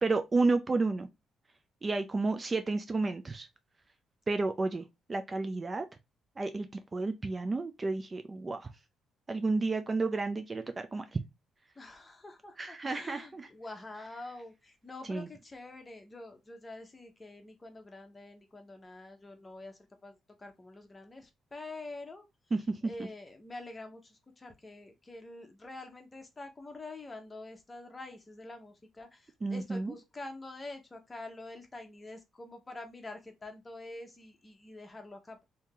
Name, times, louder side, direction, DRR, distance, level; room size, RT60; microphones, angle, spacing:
voice 1, 0.0-1.1 1.8-3.5 4.3-5.9 6.4-6.7 6.9-8.7 9.3-11.2 12.6-13.5 15.1-15.3 22.5-22.8 29.4-29.9, right 3 dB, 30° right, 0.4 m, -31 dB
voice 2, 11.8-22.3 22.8-35.4, left 2 dB, 20° left, 1.0 m, -46 dB
2.8 x 2.8 x 3.6 m
cardioid pair, 90°, 0 cm